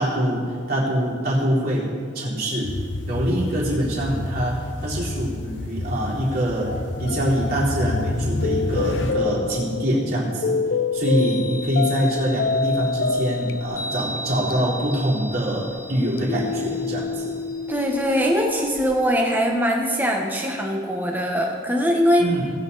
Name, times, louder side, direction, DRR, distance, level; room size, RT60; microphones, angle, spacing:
voice 1, 0.0-2.7 3.1-6.7 7.0-10.6 10.9-17.3 22.2-22.5, equal, 50° right, -7 dB, 3.8 m, -24 dB
sound 1, 2.6-9.1, left 2 dB, 75° left, 0.8 m, -29 dB
sound 2, 6.7-18.7, left 4 dB, 55° left, 0.4 m, -28 dB
Chime, 10.9-19.1, equal, 15° left, 1.3 m, -38 dB
voice 2, 17.7-22.3, equal, 10° right, 0 dB, 1.3 m, -21 dB
18.5 x 8.3 x 4.2 m, 2.1 s
head